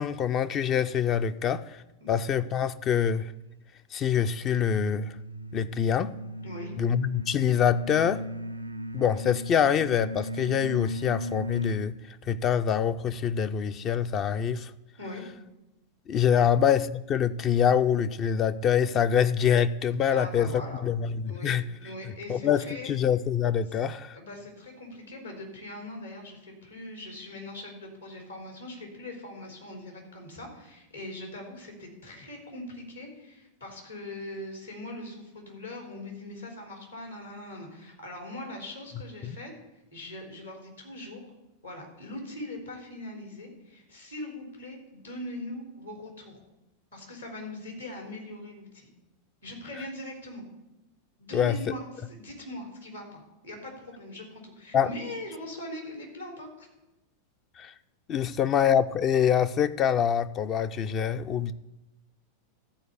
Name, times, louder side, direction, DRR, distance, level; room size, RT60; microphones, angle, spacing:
voice 1, 0.0-1.8 2.1-3.3 3.9-5.1 5.5-6.1 6.8-8.2 8.9-11.9 12.3-14.7 16.1-20.5 20.8-21.6 22.3-24.2 39.2-39.4 51.3-51.6 54.7-54.9 57.6-57.7 58.1-61.5, left 8 dB, 30° left, 0.5 m, -25 dB
sound 1, 4.6-12.0, right 1 dB, 85° right, 0.4 m, -38 dB
voice 2, 6.4-6.7 15.0-15.2 16.4-16.5 20.1-20.8 21.2-21.5 21.8-22.9 24.1-39.5 39.9-41.2 41.6-46.4 46.9-48.9 49.4-50.4 51.2-56.7 58.2-58.3, left 1 dB, 80° left, 3.6 m, -41 dB
13.5 x 4.6 x 8.2 m
figure-of-eight pair, 90°, 0 cm